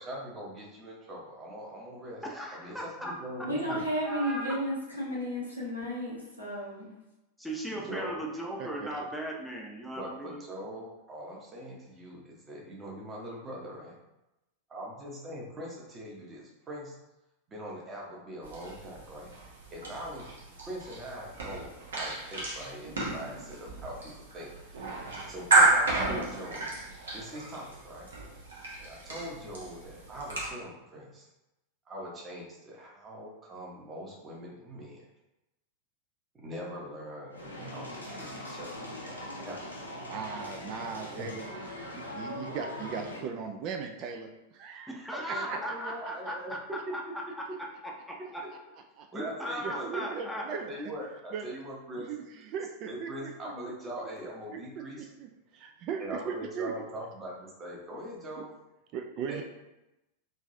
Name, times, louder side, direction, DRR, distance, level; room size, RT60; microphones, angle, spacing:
voice 1, 0.0-2.2 2.5-3.8 7.7-8.2 9.9-14.0 14.7-17.0 17.5-19.3 19.7-20.3 20.7-25.0 25.3-26.7 27.1-28.1 28.8-31.3 31.9-35.0 36.3-38.7 39.4-39.6 41.1-41.3 45.1-46.5 46.9-47.0 49.1-49.9 50.5-52.1 52.9-55.1 56.0-58.5 59.3-59.4, equal, 20° right, -3 dB, 0.9 m, -42 dB
voice 2, 2.2-3.1 3.7-4.6 7.4-10.4 44.9-46.6 46.9-47.0 47.8-48.4 49.1-50.5, equal, ahead, -2 dB, 0.6 m, -37 dB
voice 3, 3.4-6.9, equal, 90° right, -7 dB, 1.2 m, -33 dB
voice 4, 8.6-9.1 40.1-41.4 41.9-45.0 45.2-46.3 48.5-48.6 49.0-49.1 49.6-50.9 51.3-51.5 52.0-53.3 53.6-53.7 54.5-54.6 55.0-56.7 58.4-58.5 58.9-59.4, right 6 dB, 40° right, 4 dB, 0.3 m, -38 dB
sound 1, 18.4-30.5, right 3 dB, 65° right, 0.9 m, -31 dB
sound 2, 37.3-43.2, left 1 dB, 80° left, 0.7 m, -41 dB
3.8 x 2.5 x 2.6 m, 0.95 s
figure-of-eight pair, 90°, 0 cm